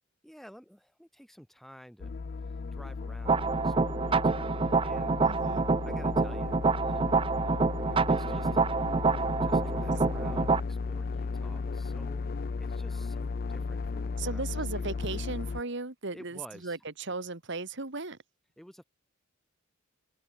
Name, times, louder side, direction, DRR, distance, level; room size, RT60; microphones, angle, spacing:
voice 1, 0.2-2.1 2.7-5.2 5.9-8.6 9.4-12.2 12.6-14.9 16.1-16.8 18.6-18.8, equal, ahead, 4.5 m, -52 dB
sound 1, 2.0-15.6, left 4 dB, 45° left, 0.4 m, -35 dB
sound 2, 3.3-10.6, right 4 dB, 25° right, 0.5 m, -27 dB
voice 2, 5.2-5.7 14.2-18.2, right 3 dB, 60° right, 1.9 m, -36 dB
open air
head